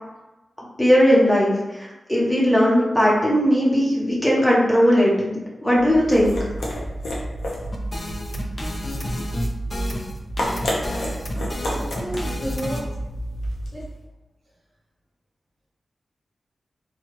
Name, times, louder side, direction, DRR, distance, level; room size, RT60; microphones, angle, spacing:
voice 1, 0.8-6.4, equal, 5° left, -5 dB, 0.8 m, -18 dB
sound 1, 5.7-13.9, equal, 80° left, 0.7 m, -30 dB
sound 2, 7.7-12.8, left 1 dB, 35° left, 0.5 m, -31 dB
voice 2, 11.7-12.9 13.7-13.9, right 1 dB, 55° right, -5 dB, 0.9 m, -32 dB
2.9 x 2.3 x 2.9 m, 1.0 s
wide cardioid pair, 80°, 0 cm